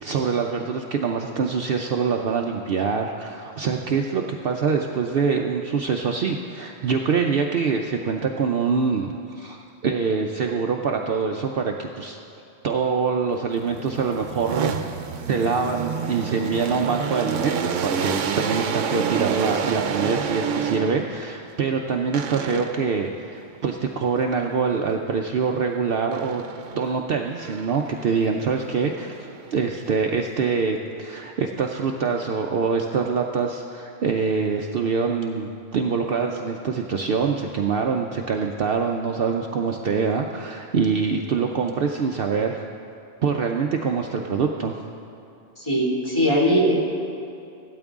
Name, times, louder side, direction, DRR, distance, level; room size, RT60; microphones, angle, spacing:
voice 1, 0.0-12.2 12.6-14.7 15.3-26.4 26.7-29.2 29.5-42.6 43.2-44.8, right 5 dB, 60° right, 2 dB, 0.7 m, -24 dB
sound 1, 13.6-21.2 22.1-22.9 26.1-26.9 27.4-29.8, right 6 dB, 85° right, 1.0 m, -29 dB
voice 2, 45.6-46.8, equal, 25° left, -6 dB, 2.4 m, -20 dB
16.0 x 12.5 x 3.6 m, 2.7 s
omnidirectional pair, 1.2 m